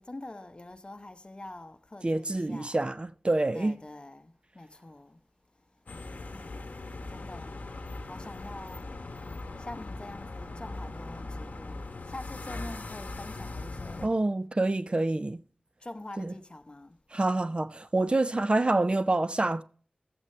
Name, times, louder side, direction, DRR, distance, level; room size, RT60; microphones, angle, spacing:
voice 1, 0.0-2.8 3.5-5.2 6.3-6.5 7.1-7.6 8.0-8.8 9.6-11.8 12.1-14.2 15.8-17.0, left 2 dB, 35° left, 0.9 m, -45 dB
voice 2, 2.0-3.7 14.0-15.4 16.2-16.3 17.1-19.6, right 2 dB, 35° right, 0.4 m, -27 dB
sound 1, 5.9-14.1, left 2 dB, 60° left, 1.0 m, -40 dB
13.0 x 8.1 x 3.2 m
wide cardioid pair, 60°, 3 cm